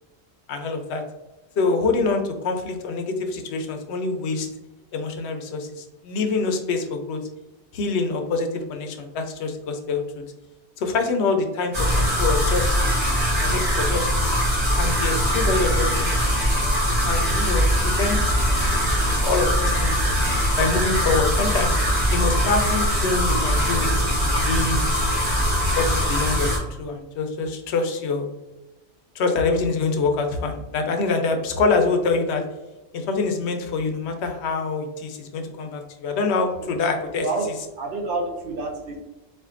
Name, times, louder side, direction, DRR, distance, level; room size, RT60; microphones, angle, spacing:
voice 1, 0.5-1.0 1.6-4.5 4.9-7.2 7.7-10.2 10.8-12.8 13.4-14.3 14.8-16.1 17.0-18.2 18.6-18.9 19.2-20.2 20.6-21.8 22.1-25.0 25.8-28.3 29.1-32.4 32.9-37.3, left 4 dB, 80° left, 5 dB, 0.9 m, -25 dB
sound 1, 11.7-26.6, equal, 75° right, 1.8 m, -21 dB
voice 2, 37.8-39.0, right 3 dB, 60° right, 0 dB, 0.8 m, -28 dB
4.3 x 2.5 x 2.4 m, 1.0 s
omnidirectional pair, 1.1 m